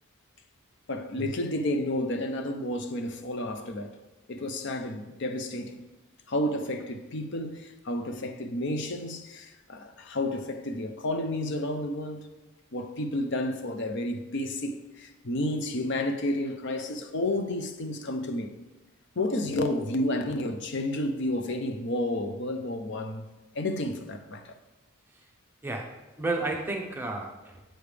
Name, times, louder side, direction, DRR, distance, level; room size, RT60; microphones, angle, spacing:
voice 1, 0.9-4.0 4.3-5.8 6.3-12.3 12.7-18.5 19.2-23.2 23.5-24.5, left 1 dB, 55° left, 0.6 m, -31 dB
voice 2, 25.6-27.6, right 2 dB, 10° right, 0.7 m, -32 dB
7.7 x 6.8 x 3.3 m
head